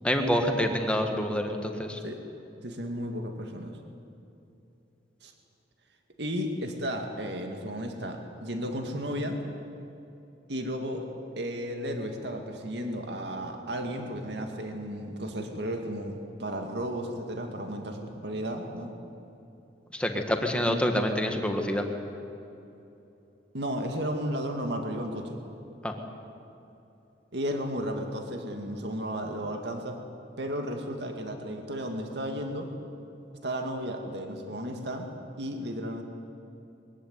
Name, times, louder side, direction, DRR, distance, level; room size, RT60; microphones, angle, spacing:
voice 1, 0.0-2.0 19.9-21.8 25.8-25.9, equal, 5° left, 4 dB, 1.7 m, -27 dB
voice 2, 2.6-3.7 5.2-5.3 6.2-9.4 10.5-18.9 23.5-25.4 27.3-30.0 30.4-32.7 33.4-35.1 35.4-36.0, equal, 65° right, 4 dB, 2.2 m, -34 dB
22.5 x 15.5 x 9.6 m, 2.9 s
head